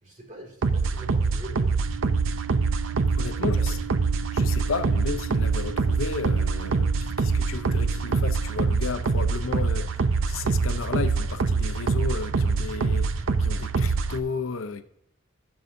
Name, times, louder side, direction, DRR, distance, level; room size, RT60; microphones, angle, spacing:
voice 1, 0.0-1.8 3.4-3.8, right 1 dB, 40° right, 2.3 m, -43 dB
sound 1, 0.6-14.2, right 4 dB, 70° right, 0.5 m, -25 dB
sound 2, 1.8-8.5, right 13 dB, 90° right, 1.6 m, -40 dB
voice 2, 3.2-3.8 4.3-6.9 7.2-13.1 13.4-14.8, left 4 dB, 75° left, 0.7 m, -33 dB
14.0 x 7.1 x 2.6 m
head